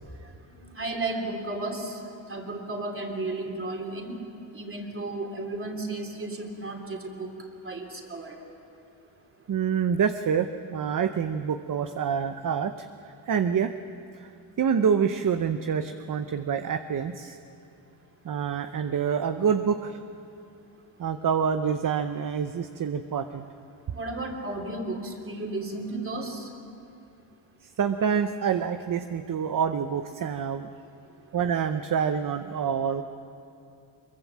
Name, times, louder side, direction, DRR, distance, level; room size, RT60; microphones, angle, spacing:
voice 1, 0.2-2.0 2.3-4.2 4.5-7.3 7.6-8.4 23.9-26.5, right 2 dB, 30° right, 2 dB, 3.2 m, -34 dB
voice 2, 9.5-12.9 13.3-13.7 14.1-14.3 14.6-17.4 18.2-20.0 21.0-23.4 27.8-30.7 31.3-33.0, right 7 dB, 45° right, 9 dB, 0.8 m, -27 dB
23.5 x 22.5 x 7.4 m, 2.7 s
wide cardioid pair, 120°, 46 cm